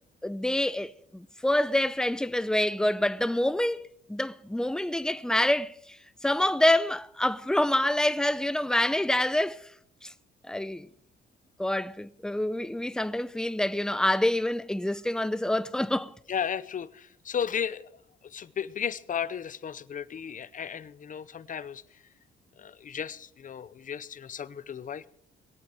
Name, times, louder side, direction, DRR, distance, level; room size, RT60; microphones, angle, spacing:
voice 1, 0.2-5.7 6.2-9.6 10.0-10.1 10.5-10.9 11.6-16.1, left 1 dB, 5° left, 0.6 m, -26 dB
voice 2, 16.3-17.9 18.2-21.8 22.6-25.1, left 8 dB, 40° left, 0.7 m, -34 dB
21.5 x 8.7 x 6.2 m
cardioid pair, 90°, 20 cm